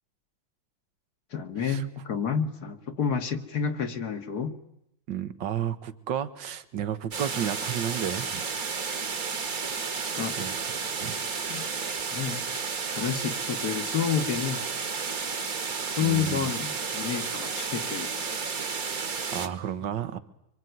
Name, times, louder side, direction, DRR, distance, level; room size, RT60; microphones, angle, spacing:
voice 1, 1.3-4.5 10.1-10.4 11.5-11.7 12.1-12.4 12.9-14.6 15.8-18.3, left 7 dB, 55° left, 7 dB, 1.9 m, -30 dB
voice 2, 5.1-8.8 10.4-10.7 11.0-11.2 16.0-16.5 19.1-20.2, right 9 dB, 70° right, 12 dB, 1.9 m, -32 dB
sound 1, 7.1-19.5, right 5 dB, 50° right, 2.0 m, -32 dB
25.0 x 24.0 x 9.4 m, 0.79 s
omnidirectional pair, 2.1 m